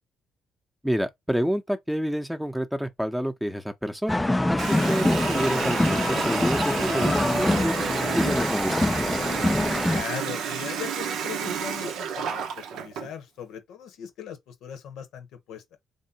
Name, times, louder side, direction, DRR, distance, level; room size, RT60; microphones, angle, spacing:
voice 1, 0.8-4.2 4.5-9.2, equal, 5° right, 0.7 m, -29 dB
sound 1, 4.1-10.0, left 1 dB, 15° left, 0.3 m, -24 dB
Water tap faucet, 4.6-13.1, right 7 dB, 70° right, 0.6 m, -31 dB
voice 2, 9.8-15.6, left 8 dB, 75° left, 0.8 m, -39 dB
3.4 x 2.7 x 2.8 m
hypercardioid pair, 50°, 0 cm